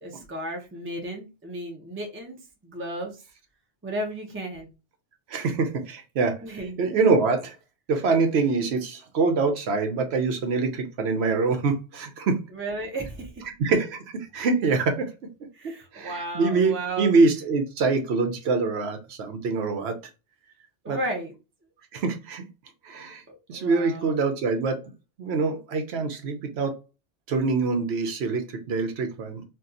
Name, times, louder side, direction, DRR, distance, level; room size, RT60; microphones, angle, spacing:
voice 1, 0.0-2.4 2.6-3.2 3.8-4.7 6.4-6.8 12.5-13.4 15.5-17.1 20.8-21.3 23.3-24.1, right 1 dB, 15° right, 0.5 m, -34 dB
voice 2, 5.3-6.4 6.8-7.5 7.9-12.4 13.6-15.1 15.9-19.9 20.9-21.0 21.9-22.4 22.8-23.2 23.5-24.8 25.2-26.8 27.3-29.4, right 4 dB, 70° right, 0.8 m, -24 dB
2.7 x 2.3 x 3.6 m
omnidirectional pair, 1.2 m